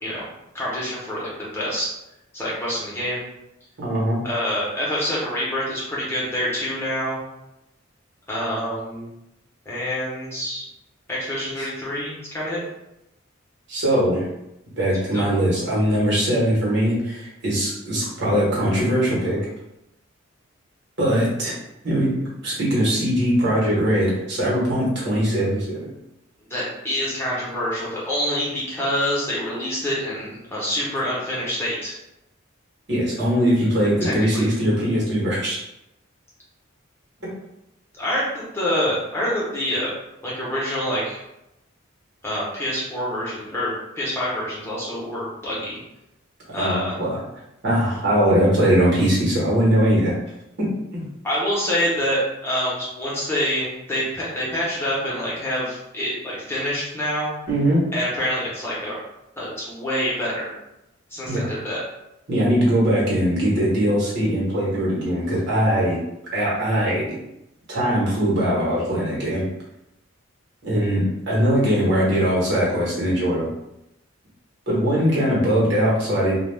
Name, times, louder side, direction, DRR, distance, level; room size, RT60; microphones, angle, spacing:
voice 1, 0.5-1.9 2.3-3.2 4.2-7.2 8.3-9.1 9.6-10.6 11.1-12.6 15.1-15.4 26.5-32.0 34.0-34.4 38.0-39.9 40.2-41.2 42.2-45.8 46.5-47.0 51.2-57.3 57.9-59.0 59.4-60.5 61.1-61.8, equal, 10° left, -7 dB, 0.9 m, -26 dB
voice 2, 3.8-4.2 11.6-11.7 13.7-14.3 14.8-19.4 21.0-21.5 21.8-22.1 22.4-25.9 32.9-35.6 37.2-37.3 46.6-47.2 47.6-50.1 50.6-50.7 50.9-51.0 57.5-57.8 61.3-61.5 62.3-66.0 66.3-67.2 67.7-69.4 70.6-73.5 74.7-76.4, equal, 55° right, -5 dB, 1.1 m, -21 dB
2.3 x 2.3 x 3.3 m, 0.87 s
head